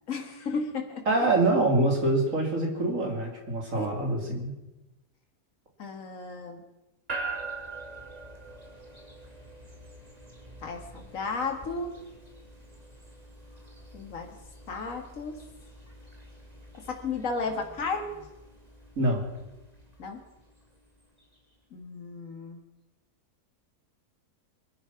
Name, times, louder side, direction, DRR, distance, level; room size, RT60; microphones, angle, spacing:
voice 1, 0.1-1.1 3.7-3.9 5.8-6.7 10.6-12.0 13.9-14.4 14.7-15.4 16.9-18.3 20.0-20.2 21.7-22.6, left 4 dB, 55° left, 4 dB, 2.2 m, -34 dB
voice 2, 1.1-4.6 19.0-19.2, right 2 dB, 55° right, 0 dB, 3.4 m, -25 dB
sound 1, 7.1-21.4, right 3 dB, 25° right, 2.8 m, -44 dB
23.5 x 10.0 x 5.9 m, 0.98 s
omnidirectional pair, 1.7 m